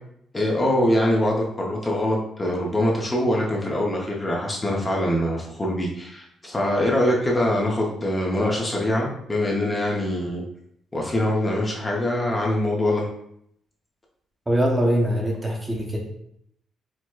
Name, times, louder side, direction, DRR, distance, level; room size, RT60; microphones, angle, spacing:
voice 1, 0.3-10.4 10.9-13.1, left 1 dB, 20° left, -2 dB, 0.6 m, -23 dB
voice 2, 14.5-16.0, equal, 15° right, 0 dB, 0.7 m, -22 dB
4.5 x 2.1 x 2.2 m, 0.72 s
cardioid pair, 90°, 0 cm